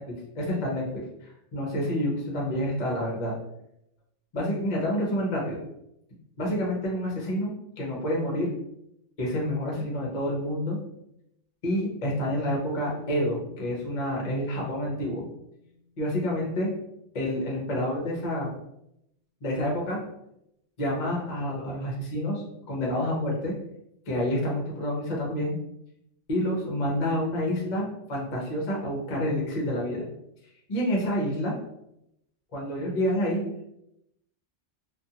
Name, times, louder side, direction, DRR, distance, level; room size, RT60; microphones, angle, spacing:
voice 1, 0.3-3.3 4.3-5.6 6.4-8.5 9.2-10.8 11.6-15.2 16.0-16.7 17.1-18.5 19.4-20.0 20.8-23.5 24.1-25.6 26.3-30.0 30.7-31.6 32.5-33.4, equal, 40° left, -3 dB, 0.8 m, -28 dB
sound 1, 12.9-16.8, left 1 dB, 80° right, 0.9 m, -49 dB
2.5 x 2.4 x 2.7 m, 0.80 s
omnidirectional pair, 1.2 m